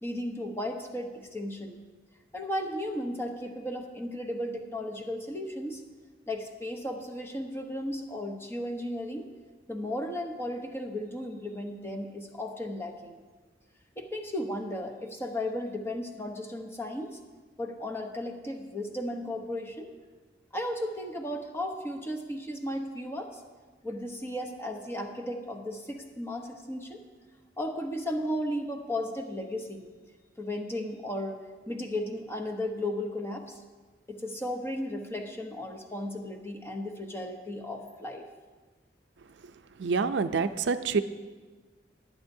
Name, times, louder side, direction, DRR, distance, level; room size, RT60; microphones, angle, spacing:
voice 1, 0.0-1.8 2.3-5.8 6.3-9.3 9.7-13.2 14.0-17.2 17.6-19.9 20.5-23.4 23.8-27.0 27.6-29.9 30.4-31.4 31.7-33.6 34.1-38.2, left 1 dB, 15° left, 3 dB, 0.9 m, -35 dB
voice 2, 39.8-41.0, right 4 dB, 80° right, 11 dB, 0.5 m, -27 dB
20.0 x 8.5 x 2.7 m, 1.4 s
head